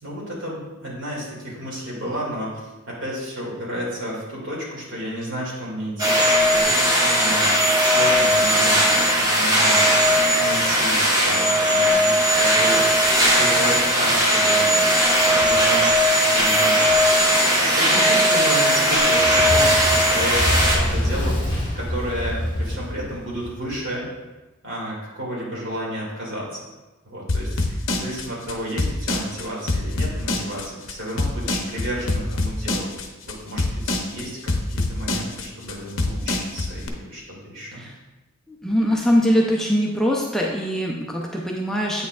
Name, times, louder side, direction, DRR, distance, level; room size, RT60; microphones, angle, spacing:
voice 1, 0.0-9.9 10.4-13.1 13.4-14.9 15.3-17.3 17.6-24.1 24.6-26.6 27.0-32.9 33.3-37.8, equal, 60° right, -5 dB, 2.1 m, -32 dB
sound 1, 6.0-20.8, equal, 15° right, 1.1 m, -18 dB
Fire, 19.2-23.8, equal, 25° left, 1.7 m, -26 dB
sound 2, 27.3-36.9, left 2 dB, 65° left, 0.7 m, -25 dB
voice 2, 38.5-42.1, equal, ahead, -3 dB, 0.4 m, -22 dB
8.2 x 6.4 x 2.3 m, 1.1 s
head